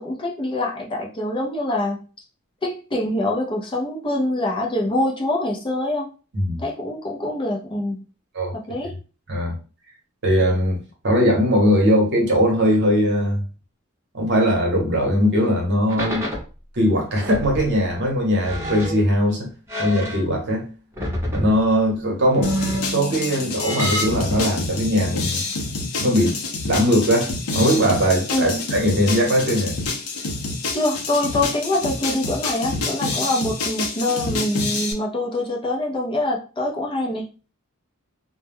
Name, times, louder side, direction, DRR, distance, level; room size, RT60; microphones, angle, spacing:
voice 1, 0.0-2.0 2.6-6.1 6.6-8.0 8.5-8.9 28.3-28.6 30.7-37.2, left 1 dB, 25° left, 0.5 m, -24 dB
voice 2, 10.2-13.4 14.1-16.3 16.7-19.5 19.8-20.6 21.2-25.4 25.8-29.8, equal, 55° right, 0.9 m, -20 dB
sound 1, 15.9-16.5 17.2-17.7 18.4-19.1 19.7-20.5 20.9-21.6 22.3-24.2, equal, 10° right, 0.8 m, -28 dB
sound 2, 22.4-34.9, left 3 dB, 75° left, 0.6 m, -28 dB
2.2 x 2.1 x 3.3 m
head